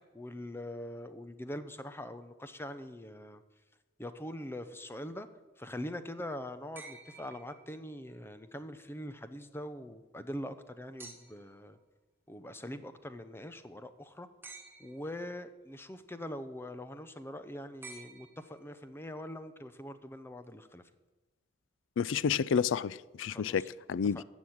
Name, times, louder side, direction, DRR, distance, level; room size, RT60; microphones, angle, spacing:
voice 1, 0.1-3.4 4.0-5.3 5.6-11.8 12.3-14.3 14.8-20.8 23.3-23.7 24.1-24.2, left 1 dB, 10° left, 0.7 m, -43 dB
sound 1, 6.8-8.1 11.0-11.6 14.4-15.2 17.8-18.9 20.4-20.5, right 4 dB, 10° right, 1.4 m, -51 dB
voice 2, 22.0-24.2, left 7 dB, 70° left, 0.4 m, -30 dB
15.5 x 6.2 x 8.7 m
head